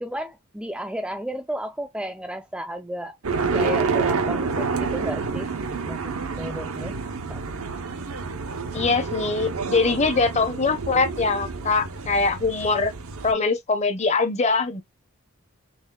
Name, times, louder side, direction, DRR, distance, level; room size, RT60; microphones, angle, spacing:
voice 1, 0.0-3.2 3.5-5.5 5.8-7.0 7.3-7.4, equal, 5° right, 0.3 m, -33 dB
sound 1, 3.2-13.3, right 4 dB, 85° right, 0.8 m, -28 dB
voice 2, 8.7-12.9 13.2-14.8, left 4 dB, 30° left, 0.7 m, -22 dB
4.1 x 3.5 x 2.2 m
head